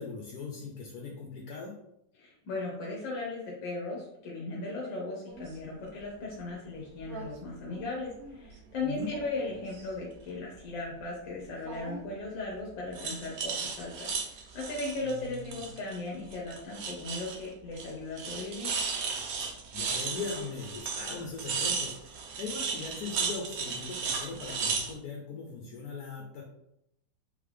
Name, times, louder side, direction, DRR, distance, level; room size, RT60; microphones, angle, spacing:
voice 1, 0.0-1.7 8.8-9.1 15.0-15.6 19.4-26.4, left 4 dB, 65° left, 0 dB, 1.2 m, -40 dB
voice 2, 2.2-18.7, left 2 dB, 90° left, -3 dB, 1.6 m, -37 dB
sound 1, 5.3-5.5 7.0-7.3 7.7-8.6 9.0-10.0 11.7-12.1 12.9-16.0 16.3-17.5 17.8-17.9 18.2-24.9, right 5 dB, 65° right, 1.0 m, -35 dB
3.9 x 3.3 x 3.3 m, 0.80 s
omnidirectional pair, 2.0 m